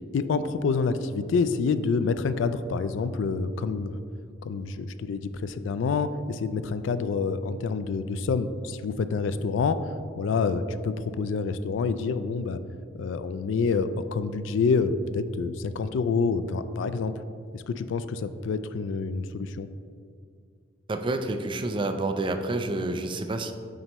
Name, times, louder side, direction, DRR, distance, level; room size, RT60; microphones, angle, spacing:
voice 1, 0.1-4.0 4.4-9.8 10.2-12.6 12.9-17.1 17.5-19.7, left 4 dB, 70° left, 12 dB, 0.3 m, -27 dB
voice 2, 20.9-23.5, right 2 dB, 25° right, 6 dB, 0.4 m, -28 dB
7.5 x 5.5 x 3.0 m, 2.3 s
head